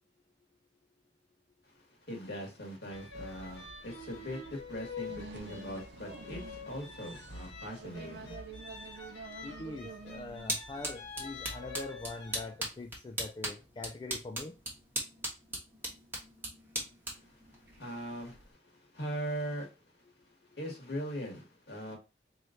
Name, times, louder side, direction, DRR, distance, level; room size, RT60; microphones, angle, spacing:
voice 1, 1.6-9.2 17.1-20.0 20.3-22.0, equal, 60° left, 1.7 m, -41 dB
sound 1, 2.9-12.5, left 3 dB, 80° left, 1.4 m, -46 dB
sound 2, 5.1-10.6, right 4 dB, 60° right, 0.5 m, -48 dB
voice 2, 9.4-14.5, left 3 dB, 25° left, 0.3 m, -43 dB
sound 3, 9.8-18.5, right 1 dB, 10° right, 1.2 m, -40 dB
4.6 x 3.1 x 2.5 m
head